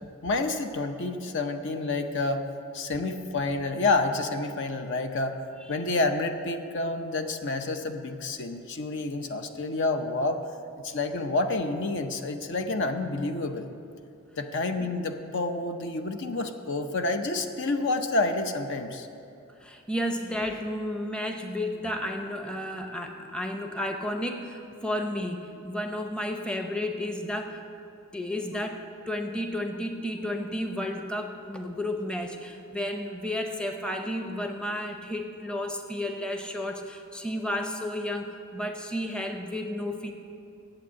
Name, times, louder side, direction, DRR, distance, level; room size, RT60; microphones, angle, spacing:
voice 1, 0.2-2.4 2.7-5.4 5.7-10.4 10.8-13.7 14.4-19.1, left 2 dB, 60° left, 7 dB, 0.7 m, -29 dB
voice 2, 19.6-27.6 28.1-40.1, left 1 dB, 5° left, 4 dB, 0.7 m, -32 dB
8.9 x 7.7 x 8.5 m, 2.6 s
head